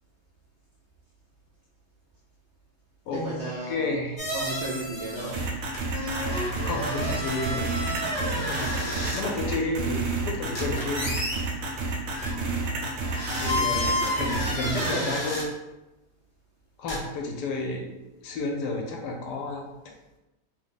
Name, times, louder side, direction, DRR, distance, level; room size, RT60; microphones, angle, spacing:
voice 1, 3.1-3.8 4.3-5.4 12.4-12.9 13.3-15.2, right 2 dB, 65° right, -6 dB, 0.7 m, -36 dB
voice 2, 3.7-4.3 6.6-7.6 8.2-8.6 9.1-11.2 12.3-12.4 13.4-13.9 14.2-15.5 16.8-18.0 18.2-19.7, left 2 dB, 75° left, 2 dB, 1.2 m, -31 dB
sound 1, 4.2-5.5 5.7-9.2 10.5-11.4 12.1-12.3 13.0-15.4 16.9-17.0, left 1 dB, 30° left, 0.5 m, -31 dB
sound 2, 5.3-14.9, right 3 dB, 85° right, 1.3 m, -30 dB
3.2 x 2.1 x 3.8 m, 1.0 s
omnidirectional pair, 1.9 m